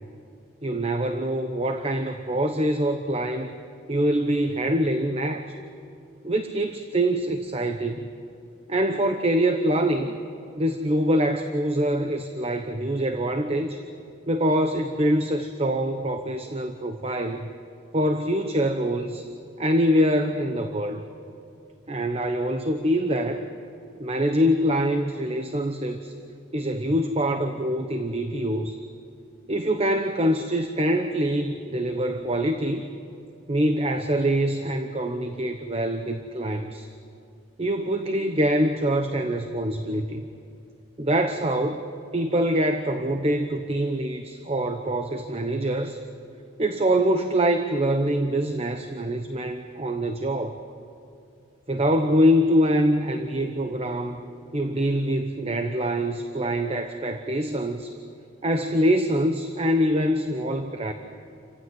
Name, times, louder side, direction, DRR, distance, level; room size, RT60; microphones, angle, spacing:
voice 1, 0.6-3.5 3.9-5.5 6.2-8.1 8.7-10.2 10.6-13.8 14.3-17.5 17.9-19.3 19.6-21.0 21.9-23.5 24.0-26.1 26.5-28.8 29.5-32.8 33.5-36.9 37.6-40.3 41.0-41.8 42.1-46.0 46.6-50.6 51.7-54.2 54.5-57.9 58.4-60.9, equal, 30° right, 7 dB, 1.0 m, -24 dB
29.0 x 15.5 x 9.2 m, 2.6 s
head